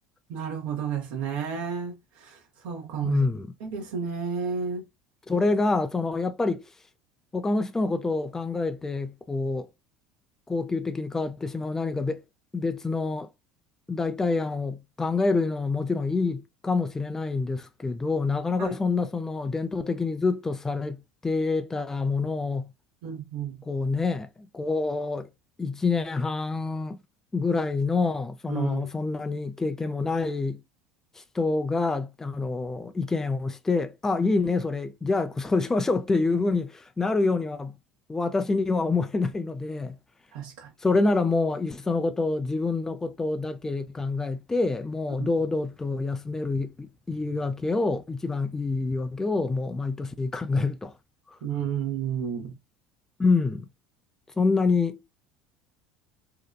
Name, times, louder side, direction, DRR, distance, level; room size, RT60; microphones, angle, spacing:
voice 1, 0.3-3.2 3.6-4.9 18.6-18.8 23.0-23.6 28.5-28.9 40.3-40.7 45.2-45.3 51.4-52.5, right 7 dB, 70° right, 0.7 m, -32 dB
voice 2, 3.0-3.5 5.3-6.7 7.3-9.7 10.5-12.2 12.5-13.3 13.9-22.7 23.7-25.3 25.6-27.0 27.3-30.6 31.2-37.8 38.1-40.0 40.8-50.9 53.2-53.6 54.4-55.0, left 3 dB, 15° left, 0.4 m, -27 dB
2.7 x 2.2 x 2.2 m
hypercardioid pair, 75°, 3 cm